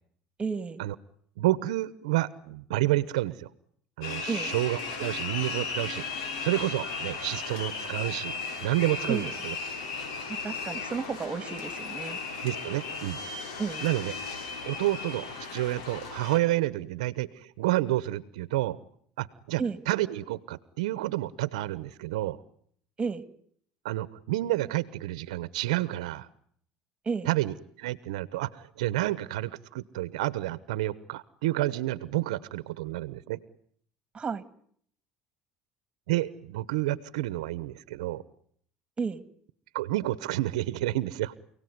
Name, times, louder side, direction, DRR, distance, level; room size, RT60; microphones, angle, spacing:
voice 1, 0.4-0.8 4.3-4.5 9.1-9.3 10.4-12.2 13.6-13.9 19.6-19.8 23.0-23.2 27.1-27.3 34.1-34.4 39.0-39.2, right 5 dB, 30° right, 13 dB, 2.5 m, -32 dB
voice 2, 1.4-3.5 4.0-8.3 8.6-9.5 12.4-13.2 13.8-14.1 14.7-18.8 19.2-22.4 23.8-26.3 27.2-33.4 36.1-38.2 39.7-41.3, right 16 dB, 85° right, 17 dB, 1.0 m, -30 dB
sound 1, 4.0-16.4, left 4 dB, 85° left, 6.9 m, -36 dB
29.5 x 18.0 x 9.5 m, 0.65 s
supercardioid pair, 80°, 4 cm